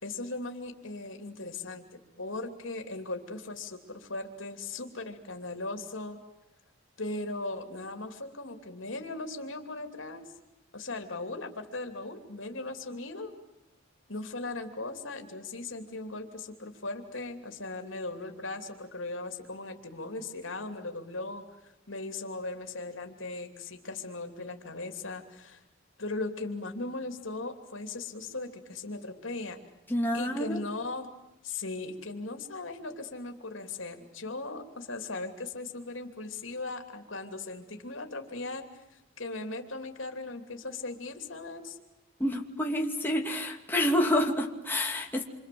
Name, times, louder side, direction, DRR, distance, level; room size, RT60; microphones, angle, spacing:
voice 1, 0.0-6.2 7.0-10.3 10.7-13.3 14.1-25.6 26.0-29.6 30.1-31.1 31.4-41.8, left 2 dB, 85° left, 5 dB, 3.0 m, -38 dB
voice 2, 29.9-30.6 42.2-45.3, left 1 dB, 10° left, 0 dB, 2.8 m, -28 dB
27.5 x 26.0 x 7.8 m, 0.96 s
head